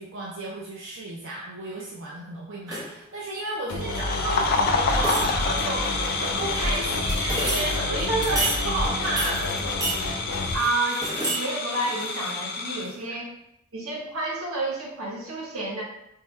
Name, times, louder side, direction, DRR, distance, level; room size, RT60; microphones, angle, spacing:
voice 1, 0.0-9.5 13.1-13.2, right 2 dB, 65° right, -3 dB, 0.5 m, -32 dB
sound 1, 2.7-3.0 4.5-4.6 4.9-5.6 6.5-7.8 8.2-8.6 9.2-10.0 10.4-11.4 11.7-12.5 12.9-13.0, right 2 dB, 20° right, 0.7 m, -30 dB
sound 2, 3.7-10.6, left 1 dB, 85° left, 0.6 m, -30 dB
sound 3, 3.8-12.9, left 4 dB, 45° left, 0.4 m, -29 dB
voice 2, 8.1-8.5 10.5-13.3 13.7-15.8, right 2 dB, 85° right, -2 dB, 1.0 m, -29 dB
4.6 x 2.2 x 3.1 m, 0.80 s
head